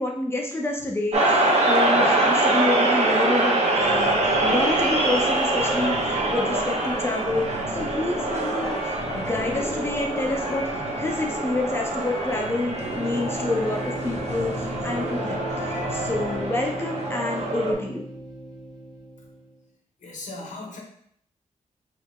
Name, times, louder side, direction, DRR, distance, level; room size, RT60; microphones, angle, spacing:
voice 1, 0.0-8.8 9.1-18.0, left 2 dB, 20° left, -1 dB, 0.5 m, -28 dB
sound 1, 1.1-17.7, right 2 dB, 60° right, 0.8 m, -25 dB
Just Enough to be Dangerous, 3.7-16.5, left 1 dB, 50° left, 1.2 m, -35 dB
sound 2, 12.9-19.6, right 1 dB, ahead, 1.5 m, -36 dB
voice 2, 20.0-20.8, left 2 dB, 75° left, -1 dB, 1.0 m, -37 dB
5.7 x 2.9 x 2.3 m, 0.68 s
wide cardioid pair, 170°, 13 cm